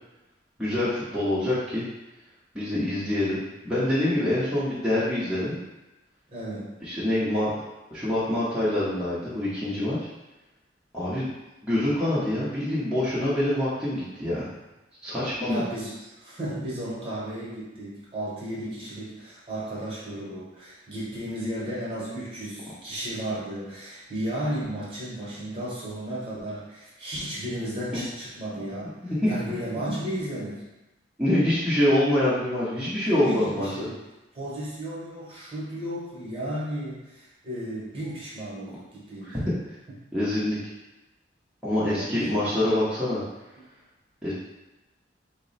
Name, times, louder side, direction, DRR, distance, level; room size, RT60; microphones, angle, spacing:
voice 1, 0.6-1.9 2.5-5.6 6.8-7.5 7.9-10.0 10.9-11.3 11.6-14.5 15.0-15.6 27.9-28.0 29.0-29.3 31.2-33.7 39.2-39.4 40.1-40.6 41.6-43.2 44.2-44.3, left 1 dB, 5° right, -12 dB, 0.7 m, -25 dB
voice 2, 6.3-6.7 15.4-28.9 29.2-30.6 33.0-34.0 34.3-39.5 41.7-42.8, right 1 dB, 30° right, -7 dB, 1.0 m, -34 dB
3.8 x 2.0 x 4.0 m, 1.0 s
head